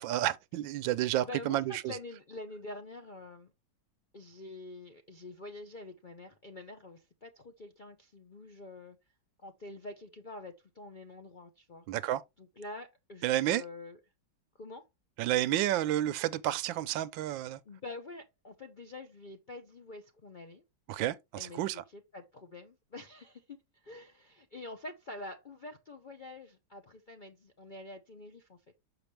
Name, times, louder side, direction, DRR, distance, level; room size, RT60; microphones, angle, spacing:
voice 1, 0.0-2.0 11.9-12.2 13.2-13.6 15.2-17.6 20.9-21.8, right 13 dB, 90° right, 1.3 m, -30 dB
voice 2, 1.2-3.5 4.1-9.0 9.4-11.9 12.4-14.0 14.5-14.9 17.7-20.6 21.4-28.6, left 2 dB, 75° left, 0.4 m, -46 dB
6.5 x 6.0 x 3.2 m
omnidirectional pair, 2.0 m